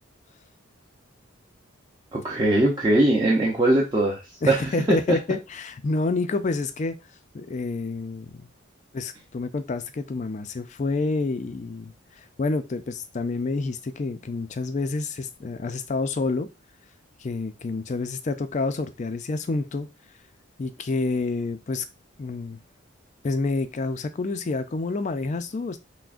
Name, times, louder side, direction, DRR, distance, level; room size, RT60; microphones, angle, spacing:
voice 1, 2.1-5.2, right 1 dB, 20° right, 0.6 m, -21 dB
voice 2, 4.4-6.9 7.3-8.5 8.9-16.5 17.2-19.9 20.6-21.9 22.2-22.6 23.2-25.8, left 3 dB, 35° left, 0.4 m, -28 dB
5.8 x 2.1 x 2.5 m
head